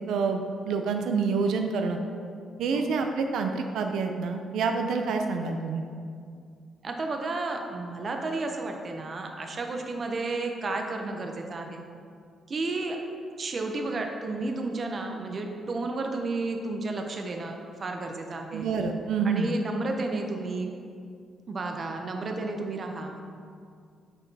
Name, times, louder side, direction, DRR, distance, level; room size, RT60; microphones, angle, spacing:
voice 1, 0.1-2.0 2.6-5.8 18.5-19.5, right 5 dB, 80° right, 5 dB, 0.4 m, -27 dB
voice 2, 6.8-11.8 12.5-13.0 13.4-18.7 19.2-20.7 21.5-23.2, right 3 dB, 35° right, 3 dB, 0.6 m, -32 dB
6.8 x 6.4 x 2.7 m, 2.3 s
cardioid pair, 165°, 0 cm